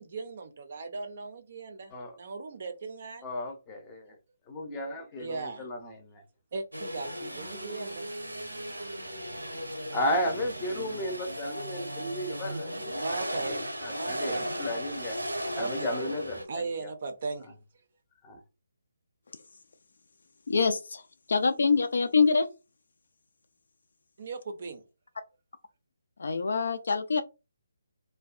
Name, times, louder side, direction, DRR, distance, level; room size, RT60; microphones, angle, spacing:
voice 1, 0.0-3.3 5.2-5.7 6.5-8.1 12.9-13.6 14.0-14.5 15.5-15.9 16.5-17.5 24.2-24.8, right 4 dB, 45° right, 0.5 m, -38 dB
voice 2, 3.2-4.2 4.5-6.2 9.9-13.0 13.3-15.2 15.5-16.9 18.2-18.4, left 1 dB, 15° left, 0.6 m, -34 dB
sound 1, 6.7-16.4, equal, 85° right, 0.6 m, -36 dB
voice 3, 20.5-21.0 21.3-22.5 26.2-27.2, left 4 dB, 60° left, 0.4 m, -25 dB
2.6 x 2.1 x 2.4 m
figure-of-eight pair, 145°, 0 cm